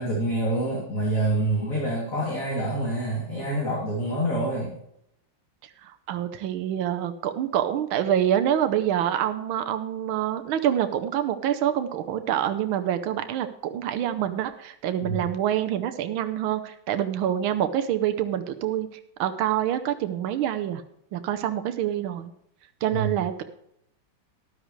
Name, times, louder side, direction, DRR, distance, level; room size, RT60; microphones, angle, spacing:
voice 1, 0.0-4.8 15.0-15.3 22.9-23.2, right 1 dB, 40° left, -3 dB, 3.2 m, -27 dB
voice 2, 5.8-18.9 19.2-20.8 21.1-22.3 22.8-23.4, right 10 dB, 80° right, 8 dB, 1.6 m, -26 dB
13.0 x 11.5 x 3.1 m, 0.76 s
omnidirectional pair, 2.2 m